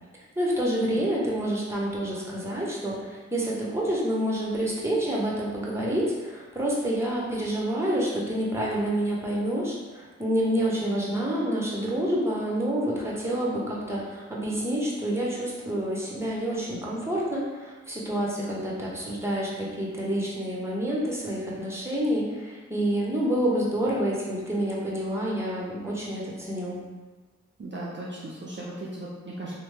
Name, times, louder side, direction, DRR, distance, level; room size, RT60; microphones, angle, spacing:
voice 1, 0.4-26.8, right 1 dB, 10° right, -4 dB, 0.9 m, -28 dB
voice 2, 27.6-29.6, right 1 dB, 40° right, -5 dB, 0.5 m, -37 dB
2.9 x 2.1 x 3.3 m, 1.3 s
cardioid pair, 50°, 29 cm